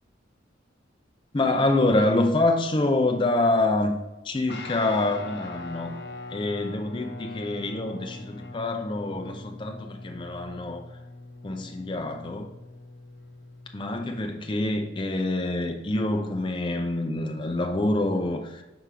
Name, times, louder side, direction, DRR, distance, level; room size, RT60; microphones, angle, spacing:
voice 1, 1.3-4.0 4.2-5.9 6.3-10.8 11.4-12.5 13.7-18.6, left 2 dB, 25° left, 4 dB, 0.5 m, -26 dB
Guitar, 4.5-14.3, left 2 dB, 60° left, 0.7 m, -42 dB
4.7 x 3.7 x 5.6 m, 1.0 s
head